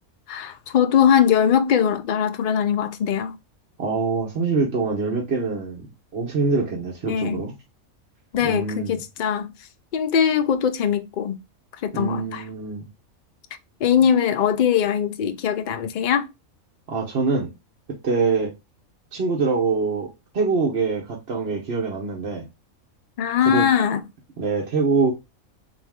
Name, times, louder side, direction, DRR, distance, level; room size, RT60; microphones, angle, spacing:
voice 1, 0.3-3.4 7.1-7.4 8.3-9.5 9.9-11.4 11.8-12.4 13.8-16.3 23.2-24.0, left 8 dB, 70° left, 0.4 m, -21 dB
voice 2, 3.8-5.9 6.1-7.5 8.4-9.0 11.9-12.9 16.9-17.5 18.0-18.5 19.1-20.1 20.3-22.5 23.5-23.7 24.4-25.1, right 4 dB, 50° right, 1.1 m, -24 dB
3.8 x 2.6 x 3.5 m
omnidirectional pair, 1.5 m